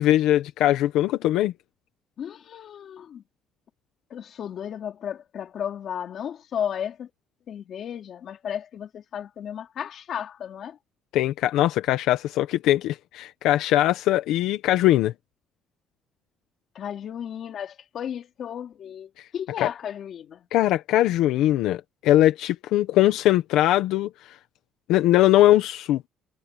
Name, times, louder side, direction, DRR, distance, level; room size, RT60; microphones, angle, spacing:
voice 1, 0.0-1.5 11.1-15.1 19.2-19.3 19.6-19.7 20.5-24.4 24.9-26.1, left 14 dB, 80° left, 1.1 m, -21 dB
voice 2, 2.2-3.2 4.1-7.1 7.5-10.8 16.7-20.5, left 9 dB, 40° left, 4.0 m, -34 dB
cardioid pair, 175°, 0 cm